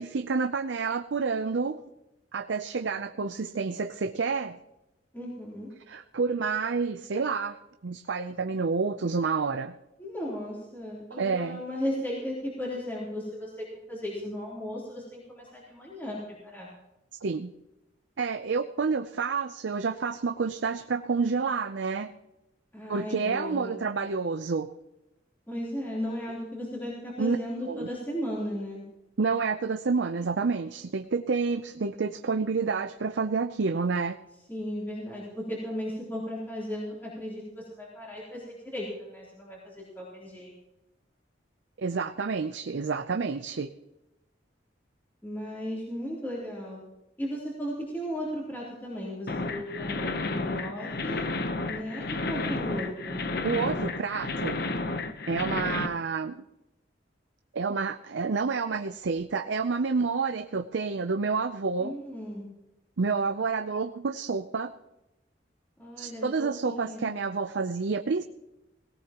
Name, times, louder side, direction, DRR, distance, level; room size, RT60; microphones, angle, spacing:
voice 1, 0.0-1.8 2.3-4.6 5.9-9.8 11.1-11.6 17.2-17.5 18.2-22.1 22.9-24.7 27.2-27.4 27.6-27.9 29.2-34.2 41.8-43.7 53.4-54.6 55.3-56.4 57.5-62.0 63.0-64.7 66.0-68.2, right 4 dB, 80° right, 8 dB, 0.6 m, -29 dB
voice 2, 5.1-5.7 10.0-16.7 22.7-23.7 25.5-28.8 34.5-40.5 45.2-46.8 47.2-51.2 51.7-53.2 61.8-62.5 65.8-67.1, equal, 10° left, -6 dB, 3.4 m, -36 dB
sound 1, 49.3-55.9, left 3 dB, 55° left, 0.9 m, -31 dB
18.0 x 17.5 x 3.0 m, 0.95 s
head